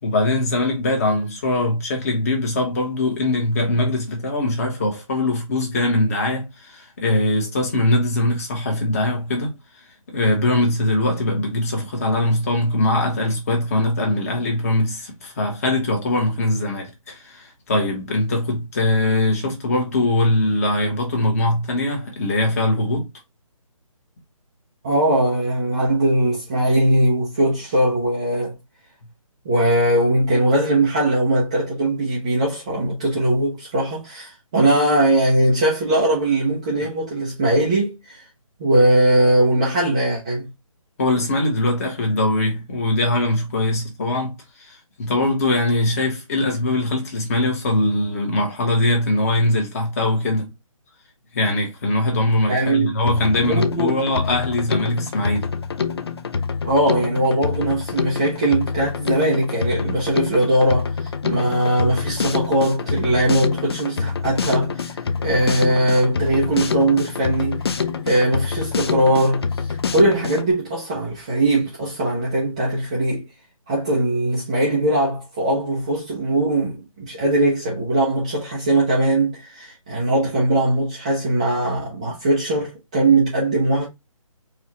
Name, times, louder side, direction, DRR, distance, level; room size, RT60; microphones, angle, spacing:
voice 1, 0.0-9.5 10.1-23.1 41.0-50.5 51.3-55.5, left 1 dB, 25° left, 1.2 m, -21 dB
voice 2, 24.8-28.6 29.4-38.2 38.6-40.5 52.5-52.9 53.4-54.0 56.6-65.0 65.2-73.3 73.7-83.9, right 1 dB, 10° right, 0.5 m, -20 dB
Drum kit, 53.1-70.5, left 5 dB, 45° left, 0.4 m, -26 dB
4.5 x 2.4 x 2.8 m
hypercardioid pair, 165°, 18 cm